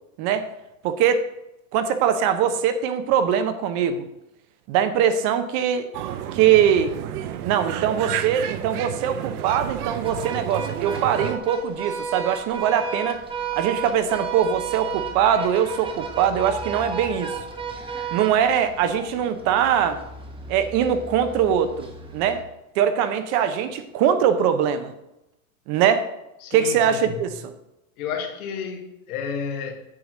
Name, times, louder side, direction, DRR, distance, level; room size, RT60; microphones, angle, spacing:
voice 1, 0.8-1.2 1.7-4.0 4.7-5.9 6.3-6.9 7.4-13.2 13.6-17.4 18.1-20.0 20.5-22.4 22.8-24.9 25.7-26.1 26.5-27.5, right 8 dB, 40° right, 9 dB, 0.8 m, -22 dB
sound 1, 5.9-11.4, right 11 dB, 80° right, 0.9 m, -31 dB
sound 2, 10.0-22.4, right 5 dB, 10° right, 1.2 m, -33 dB
voice 2, 26.4-27.2 28.0-29.7, left 6 dB, 70° left, 4 dB, 1.9 m, -31 dB
8.5 x 4.7 x 6.5 m, 0.90 s
supercardioid pair, 145°, 44 cm